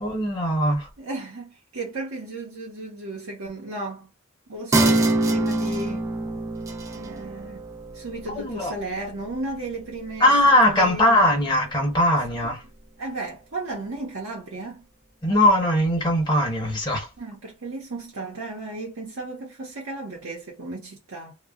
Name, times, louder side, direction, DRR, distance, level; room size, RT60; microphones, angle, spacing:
voice 1, 0.0-0.9 8.3-8.7 10.2-12.6 15.2-17.1, left 1 dB, 20° left, 1.1 m, -20 dB
voice 2, 1.0-4.1 4.5-6.1 6.9-10.3 10.6-11.4 12.4-12.5 13.0-14.9 17.2-21.4, right 2 dB, 80° right, 0.9 m, -35 dB
sound 1, 4.7-11.7 12.1-12.2, right 2 dB, 15° right, 0.5 m, -27 dB
2.3 x 2.0 x 3.5 m
head